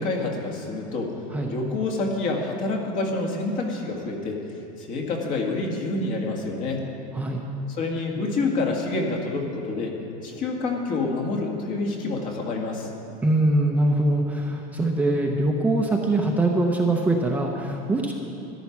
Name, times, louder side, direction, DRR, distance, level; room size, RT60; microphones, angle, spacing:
voice 1, 0.0-1.1 1.5-4.4 4.8-6.8 7.7-9.9 10.2-12.9, left 3 dB, 45° left, 1 dB, 2.0 m, -27 dB
voice 2, 13.2-18.1, right 2 dB, 10° right, 0 dB, 0.8 m, -23 dB
13.5 x 11.0 x 5.9 m, 2.7 s
cardioid pair, 160°, 19 cm